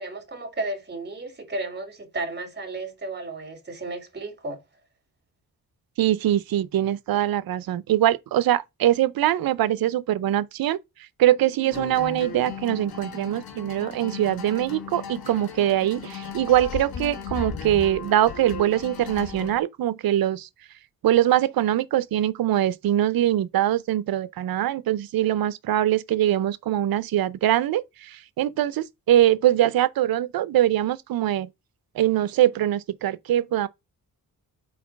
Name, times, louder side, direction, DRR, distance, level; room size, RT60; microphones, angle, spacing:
voice 1, 0.0-4.6, right 2 dB, 30° right, 2.2 m, -33 dB
voice 2, 6.0-10.8 11.2-20.5 21.0-31.5 32.0-33.7, right 12 dB, 80° right, 0.6 m, -23 dB
sound 1, 11.7-19.6, left 6 dB, 85° left, 1.6 m, -36 dB
4.6 x 4.2 x 5.7 m
cardioid pair, 110°, 35 cm